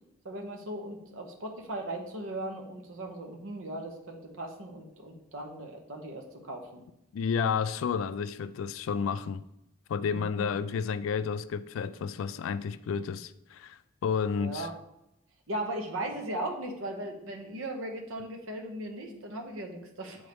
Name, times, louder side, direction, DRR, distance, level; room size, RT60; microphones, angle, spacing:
voice 1, 0.2-6.8 10.1-10.5 14.4-14.7 15.5-20.3, right 1 dB, 85° right, 0.9 m, -38 dB
voice 2, 7.1-9.4 9.9-14.7, left 6 dB, 85° left, 0.3 m, -31 dB
7.8 x 3.5 x 3.5 m
head